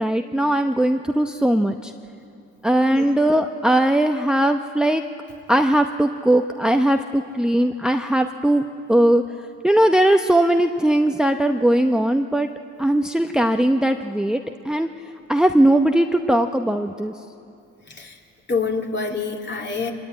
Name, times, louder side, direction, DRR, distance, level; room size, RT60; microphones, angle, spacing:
voice 1, 0.0-1.9 2.6-5.0 5.5-9.2 9.6-12.5 12.8-14.4 14.6-14.9 15.3-17.1, right 1 dB, ahead, 6 dB, 0.8 m, -19 dB
voice 2, 18.5-19.9, left 4 dB, 35° left, 1 dB, 3.1 m, -26 dB
24.0 x 20.5 x 9.2 m, 2.6 s
cardioid pair, 90°, 30 cm